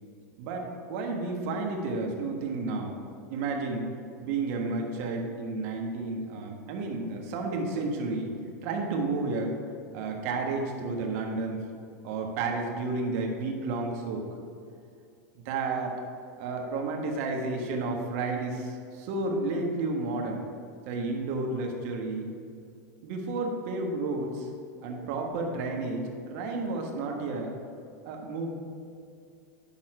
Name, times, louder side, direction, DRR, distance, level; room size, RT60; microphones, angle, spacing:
voice 1, 0.4-3.0 3.3-3.9 4.2-9.6 9.9-11.6 12.0-14.2 15.3-15.9 16.4-20.4 20.9-22.3 23.0-24.5 24.8-27.5 28.0-28.5, right 3 dB, 55° right, 2 dB, 1.5 m, -31 dB
11.0 x 4.1 x 4.9 m, 2.5 s
hypercardioid pair, 100°, 9 cm